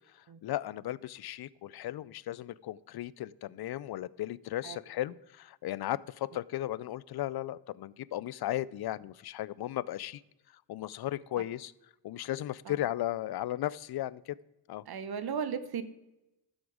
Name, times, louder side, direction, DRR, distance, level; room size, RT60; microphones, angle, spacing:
voice 1, 0.1-10.2 10.7-11.7 12.0-14.4 14.7-14.8, left 14 dB, 65° left, 21 dB, 0.5 m, -36 dB
voice 2, 14.9-15.8, right 7 dB, 60° right, 13 dB, 0.9 m, -35 dB
12.5 x 7.2 x 4.9 m, 0.94 s
cardioid pair, 90°, 42 cm